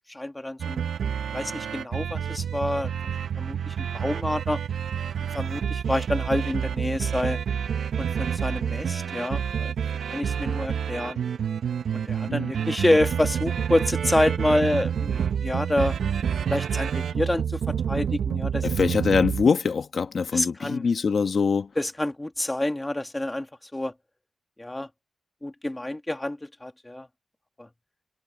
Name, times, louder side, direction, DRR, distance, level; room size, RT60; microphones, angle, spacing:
voice 1, 0.1-0.8 1.3-2.9 3.4-4.6 5.3-7.4 8.0-9.7 10.1-11.2 11.9-15.9 16.5-18.7 20.3-20.9 21.8-23.5 23.7-23.9 24.6-24.9 25.4-27.1 27.6-27.7, left 1 dB, 15° left, 2.0 m, -27 dB
sound 1, 0.6-19.5, right 8 dB, 80° right, 0.8 m, -28 dB
voice 2, 18.6-21.7, left 5 dB, 60° left, 1.3 m, -23 dB
wide cardioid pair, 105°, 0 cm